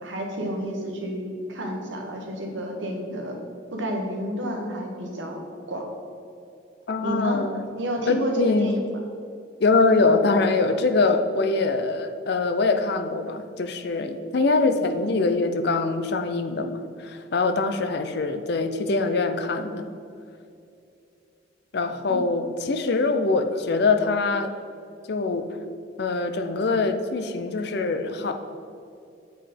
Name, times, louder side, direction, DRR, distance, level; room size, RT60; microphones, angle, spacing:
voice 1, 0.0-3.4 3.7-5.4 5.7-5.8 7.0-7.4 7.7-8.8 22.1-22.2, equal, 75° right, 1 dB, 1.3 m, -30 dB
voice 2, 6.9-7.6 8.1-8.7 9.6-19.8 21.7-24.5 25.1-25.5 26.0-28.3, left 3 dB, 55° left, 7 dB, 0.5 m, -23 dB
7.9 x 5.0 x 4.2 m, 2.6 s
head